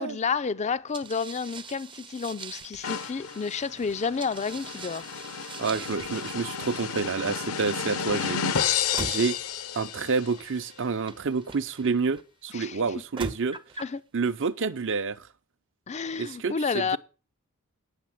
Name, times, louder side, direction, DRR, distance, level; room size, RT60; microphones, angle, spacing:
voice 1, 0.0-5.2 12.5-12.8 13.8-14.0 15.9-17.0, left 5 dB, 30° left, 0.4 m, -30 dB
sound 1, 0.9-12.2 12.9-14.0, right 4 dB, 20° right, 0.6 m, -43 dB
sound 2, 2.8-10.4, left 7 dB, 70° left, 0.8 m, -32 dB
voice 2, 5.6-8.4 9.0-9.4 9.7-13.6 14.1-15.3 16.2-17.0, right 4 dB, 60° right, 0.7 m, -28 dB
9.6 x 6.4 x 7.5 m
head